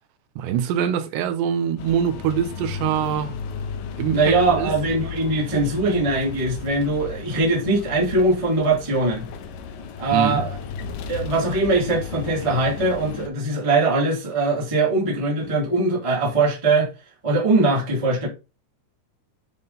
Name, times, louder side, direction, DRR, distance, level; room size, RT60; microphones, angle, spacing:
voice 1, 0.4-3.3 4.0-4.7 10.1-10.4, right 9 dB, 80° right, 3.1 m, -24 dB
sound 1, 1.8-13.3, left 5 dB, 80° left, 2.0 m, -34 dB
voice 2, 4.1-9.2 10.0-10.6 11.1-16.9 17.2-18.3, right 2 dB, 20° right, 0.8 m, -21 dB
9.9 x 3.6 x 4.0 m
omnidirectional pair, 5.0 m